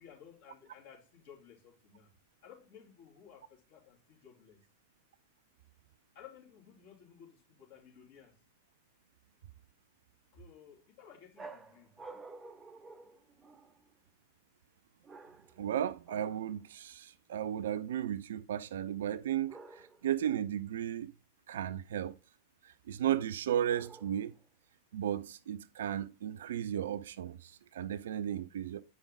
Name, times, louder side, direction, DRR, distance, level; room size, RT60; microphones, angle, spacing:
voice 1, 0.0-2.1 2.4-4.6 6.1-8.4 10.3-11.9, left 7 dB, 55° left, 3.0 m, -56 dB
sound 1, 11.4-13.9 15.0-15.7 16.1-16.5 19.5-20.1 23.7-24.4, right 3 dB, 15° right, 0.7 m, -51 dB
voice 2, 15.6-21.1 21.5-22.1 22.6-24.3 24.9-28.8, right 10 dB, 60° right, 0.5 m, -35 dB
8.8 x 5.3 x 3.8 m
figure-of-eight pair, 90°, 0 cm